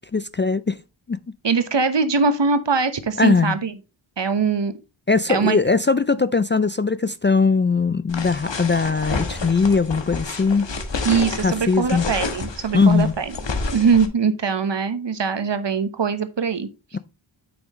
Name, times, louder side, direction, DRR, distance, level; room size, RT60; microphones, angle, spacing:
voice 1, 0.1-0.8 1.1-1.2 3.2-3.6 5.1-10.7 11.4-12.0 12.7-13.1, left 4 dB, 25° left, 0.4 m, -20 dB
voice 2, 1.4-3.8 4.2-4.7 5.3-5.6 11.0-13.3 13.7-16.7, right 5 dB, 60° right, 1.2 m, -22 dB
sound 1, 8.1-14.1, left 3 dB, 65° left, 1.3 m, -29 dB
8.9 x 6.2 x 3.1 m
wide cardioid pair, 65°, 48 cm